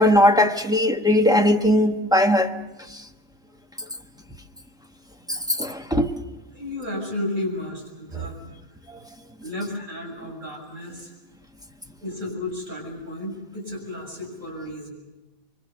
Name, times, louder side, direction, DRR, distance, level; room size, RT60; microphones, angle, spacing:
voice 1, 0.0-2.5 5.6-6.2, left 1 dB, 5° right, 1.0 m, -18 dB
voice 2, 6.5-8.4 9.4-11.1 12.0-14.9, left 1 dB, 60° right, 7.4 m, -32 dB
26.0 x 24.0 x 6.8 m
omnidirectional pair, 1.5 m